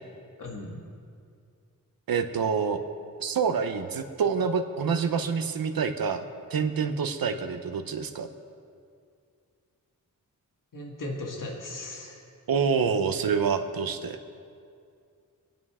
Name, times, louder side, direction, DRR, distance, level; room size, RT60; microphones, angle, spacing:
voice 1, 0.4-0.8 10.7-12.2, left 2 dB, 65° left, -1 dB, 1.9 m, -37 dB
voice 2, 2.1-2.8 3.2-6.2 6.5-8.3 12.5-14.2, right 6 dB, 85° right, 7 dB, 0.9 m, -27 dB
26.0 x 9.0 x 3.7 m, 2.3 s
wide cardioid pair, 140°, 34 cm